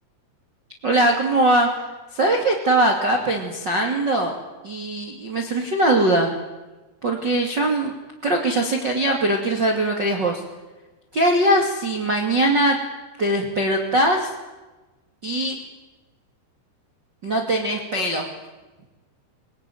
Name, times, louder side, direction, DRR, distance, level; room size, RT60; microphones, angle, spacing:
voice 1, 0.8-1.7 2.1-4.4 4.6-6.3 7.0-7.9 8.2-10.4 11.1-12.8 13.2-14.3 15.2-15.6 17.2-18.3, right 1 dB, 35° right, 1 dB, 1.9 m, -21 dB
22.0 x 21.0 x 9.3 m, 1.1 s
omnidirectional pair, 5.6 m